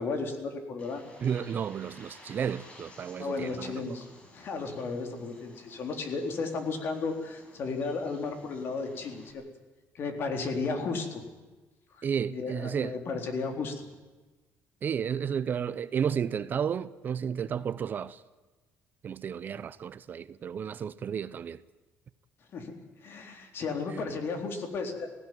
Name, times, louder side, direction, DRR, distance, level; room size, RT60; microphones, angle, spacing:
voice 1, 0.0-1.0 3.2-4.1 4.3-9.4 9.9-11.2 11.9-13.9 22.5-22.7 23.0-25.1, left 4 dB, 50° left, 3.8 m, -34 dB
Bird, 0.8-9.3, left 1 dB, 25° left, 5.8 m, -54 dB
voice 2, 1.2-3.8 12.0-13.0 14.8-18.2 19.0-21.6, right 7 dB, 40° right, 0.7 m, -32 dB
19.0 x 16.5 x 9.4 m
cardioid pair, 135°, 5 cm